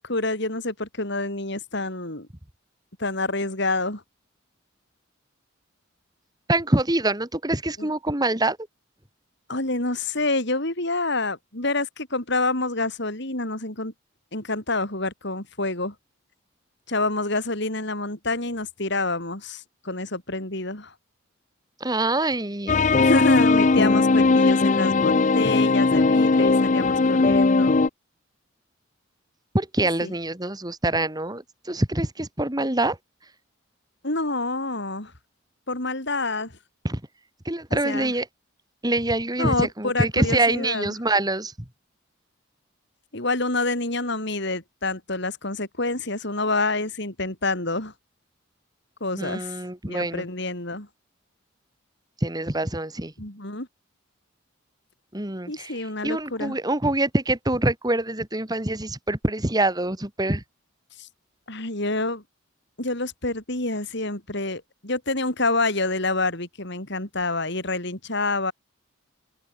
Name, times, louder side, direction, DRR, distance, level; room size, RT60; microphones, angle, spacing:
voice 1, 0.0-2.3 3.0-4.0 7.8-7.9 9.5-13.9 14.3-15.9 16.9-20.9 23.0-27.8 30.0-30.1 34.0-35.1 35.7-36.5 37.8-38.1 39.4-40.9 43.1-47.9 49.0-49.5 49.9-50.9 53.2-53.7 55.5-56.6 61.0-61.1 61.5-62.2 62.8-68.5, left 2 dB, 55° left, 5.0 m, -27 dB
voice 2, 6.5-8.6 21.8-22.8 29.5-33.0 36.8-37.0 37.5-38.3 38.8-41.5 49.2-50.3 52.2-53.1 55.1-55.7 56.0-60.4, right 2 dB, 20° right, 2.3 m, -25 dB
sound 1, 22.7-27.9, left 3 dB, 35° left, 0.5 m, -19 dB
head